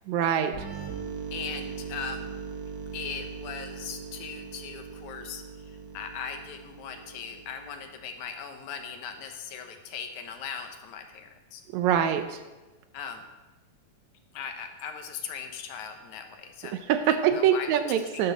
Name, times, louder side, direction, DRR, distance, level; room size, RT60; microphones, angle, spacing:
voice 1, 0.1-0.7 11.7-12.4 16.7-18.3, right 9 dB, 75° right, 9 dB, 1.8 m, -24 dB
sound 1, 0.5-8.1, right 6 dB, 60° right, 1.2 m, -40 dB
voice 2, 1.3-2.3 2.9-11.6 12.9-13.3 14.3-16.8 17.4-18.3, left 6 dB, 75° left, 5 dB, 2.3 m, -39 dB
12.5 x 10.5 x 4.0 m, 1.2 s
omnidirectional pair, 3.6 m